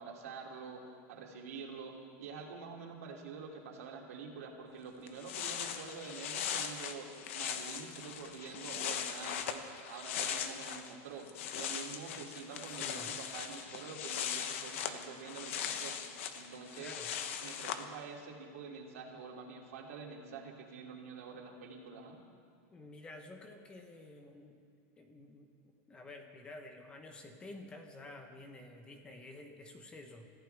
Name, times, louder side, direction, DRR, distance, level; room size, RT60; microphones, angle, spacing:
voice 1, 0.0-9.6 9.9-11.3 11.5-16.0 16.3-16.9 17.4-22.2, right 5 dB, 90° right, 0 dB, 2.8 m, -47 dB
sound 1, 4.8-4.9 5.1-10.9 11.2-17.8, left 8 dB, 60° left, 1.1 m, -39 dB
voice 2, 12.8-13.1 16.8-17.1 22.7-24.6 25.0-25.5 25.9-30.3, left 2 dB, 10° left, 5 dB, 1.0 m, -50 dB
26.5 x 15.0 x 3.5 m, 2.3 s
supercardioid pair, 180°, 8 cm